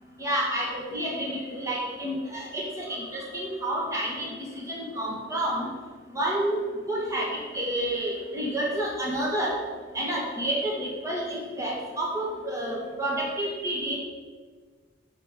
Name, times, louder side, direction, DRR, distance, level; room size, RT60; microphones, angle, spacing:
voice 1, 0.2-5.7 6.1-6.6 6.9-9.5 9.9-14.0, right 1 dB, 15° right, -3 dB, 1.7 m, -29 dB
8.0 x 3.9 x 6.8 m, 1.5 s
head